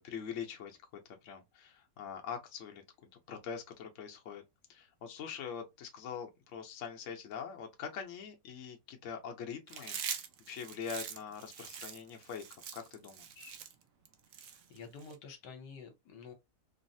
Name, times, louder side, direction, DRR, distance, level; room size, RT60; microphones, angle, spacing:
voice 1, 0.0-4.4 4.7-13.5, left 7 dB, 55° left, 0.9 m, -44 dB
Chewing mastication, 9.7-15.1, right 8 dB, 75° right, 0.7 m, -43 dB
voice 2, 14.5-16.3, left 5 dB, 70° left, 1.4 m, -49 dB
3.9 x 2.0 x 2.6 m
omnidirectional pair, 2.0 m